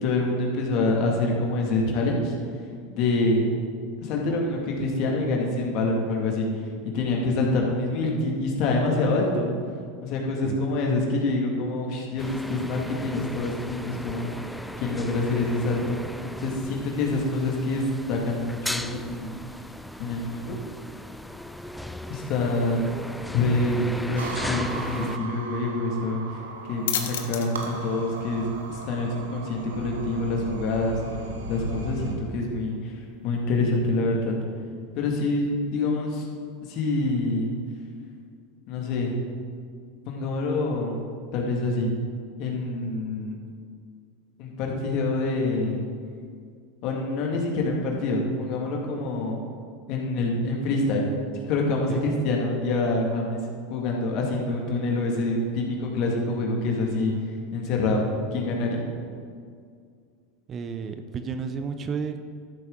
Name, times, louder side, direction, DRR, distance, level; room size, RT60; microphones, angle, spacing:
voice 1, 0.0-2.3 2.9-3.5 4.0-6.5 6.9-9.5 10.0-14.3 14.8-16.0 16.4-17.8 18.1-19.3 20.0-20.6 22.1-23.0 23.3-26.2 26.7-31.0 31.5-32.9 33.2-34.3 35.0-36.3 36.7-37.5 38.7-39.1 40.1-41.0 41.3-41.9 42.4-43.4 44.4-45.8 46.8-49.4 49.9-51.0 51.5-53.4 53.7-57.1 57.5-58.0 58.3-58.8, left 2 dB, 55° left, 0 dB, 2.2 m, -26 dB
sound 1, 12.2-25.2, left 1 dB, 5° left, 0.4 m, -37 dB
sound 2, 24.2-32.2, right 3 dB, 85° right, 1.3 m, -37 dB
sound 3, 26.3-33.5, left 9 dB, 80° left, 0.9 m, -39 dB
voice 2, 60.5-62.2, right 5 dB, 35° right, 8 dB, 0.8 m, -32 dB
13.5 x 7.9 x 3.9 m, 2.1 s
hypercardioid pair, 95°, 0 cm